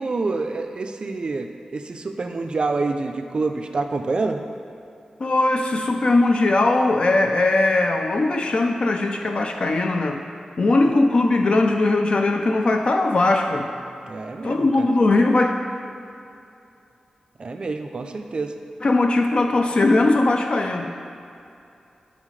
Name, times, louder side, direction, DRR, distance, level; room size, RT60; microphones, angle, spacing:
voice 1, 0.0-4.4 14.0-14.9 17.4-18.5, right 3 dB, 45° right, 5 dB, 0.4 m, -27 dB
voice 2, 5.2-10.2 10.6-13.7 14.4-15.5 18.8-20.9, left 2 dB, 50° left, 4 dB, 0.4 m, -19 dB
11.0 x 4.2 x 3.2 m, 2.6 s
wide cardioid pair, 130°, 2 cm